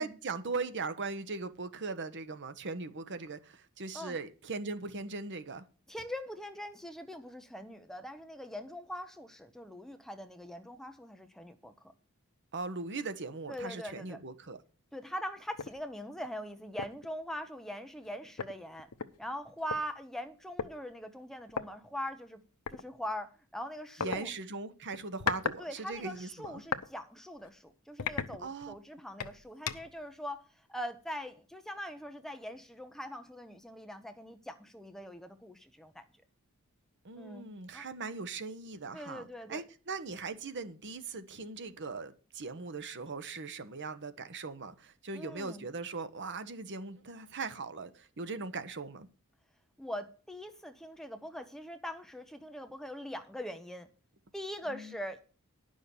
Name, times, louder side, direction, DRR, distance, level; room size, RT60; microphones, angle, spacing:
voice 1, 0.0-5.6 12.5-14.6 24.0-26.6 28.4-28.7 37.0-49.1 54.7-54.9, right 4 dB, 55° right, 1.0 m, -39 dB
voice 2, 5.9-11.9 13.5-14.2 14.9-18.9 19.2-22.4 22.7-24.3 25.6-36.0 37.2-37.5 37.7-37.9 38.9-39.6 45.1-45.7 49.8-53.9 54.3-55.2, equal, ahead, 0.8 m, -42 dB
sound 1, 15.6-15.8 16.2-16.4 16.8-17.1 18.0-18.1 18.4-19.8 20.6-20.7 21.5-21.7 22.7-22.8 24.0-24.2 24.9-25.6 25.9-26.9 27.3-27.5 28.0-28.8 29.2-30.0, left 6 dB, 90° left, 0.8 m, -36 dB
10.5 x 6.4 x 7.0 m
head